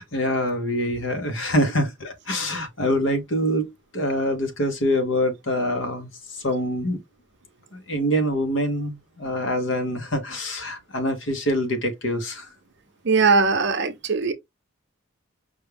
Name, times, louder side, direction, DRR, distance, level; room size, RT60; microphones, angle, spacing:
voice 1, 0.0-6.1 6.4-7.0 7.9-12.5, equal, 60° left, 1.0 m, -25 dB
voice 2, 13.0-14.3, right 4 dB, 55° right, 0.6 m, -20 dB
5.3 x 2.3 x 3.4 m
head